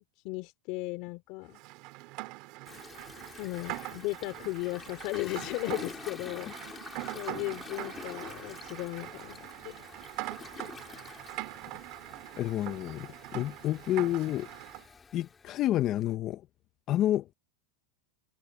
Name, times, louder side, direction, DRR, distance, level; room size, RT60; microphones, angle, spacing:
voice 1, 0.0-1.6 3.4-6.5 7.1-9.7, left 23 dB, 55° left, 2.9 m, -36 dB
Rain, 1.5-14.8, right 22 dB, 50° right, 3.7 m, -43 dB
Toilet flush, 2.7-16.1, left 5 dB, 15° left, 2.3 m, -48 dB
voice 2, 12.4-14.5 15.1-16.4 16.9-17.3, left 13 dB, 35° left, 0.7 m, -29 dB
supercardioid pair, 135°, 0 cm